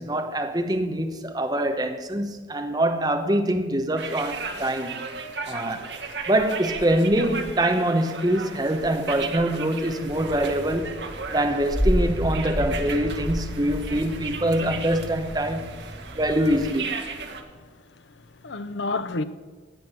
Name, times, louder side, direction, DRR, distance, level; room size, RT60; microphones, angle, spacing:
voice 1, 0.0-5.0 5.5-5.9 6.3-11.0 11.3-15.8 16.1-16.9, right 1 dB, 20° right, 1.0 m, -24 dB
sound 1, 3.9-17.4, right 4 dB, 65° right, 1.3 m, -36 dB
sound 2, 10.0-16.6, equal, 20° left, 3.9 m, -31 dB
voice 2, 17.3-19.2, left 3 dB, 75° left, 0.8 m, -32 dB
17.0 x 6.0 x 8.3 m
head